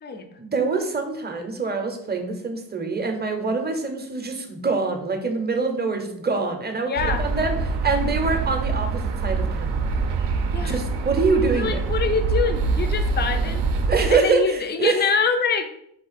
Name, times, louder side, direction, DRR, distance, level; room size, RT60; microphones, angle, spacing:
voice 1, 0.4-6.9 7.2-9.8 10.6-11.8 13.9-15.1, right 4 dB, 20° right, 4 dB, 0.6 m, -25 dB
voice 2, 6.8-7.2 10.5-10.8 11.5-13.6 14.1-15.6, left 5 dB, 25° left, 7 dB, 0.4 m, -25 dB
sound 1, 7.0-14.1, right 4 dB, 65° right, 0.6 m, -25 dB
4.9 x 2.4 x 4.0 m, 0.73 s
wide cardioid pair, 120°, 44 cm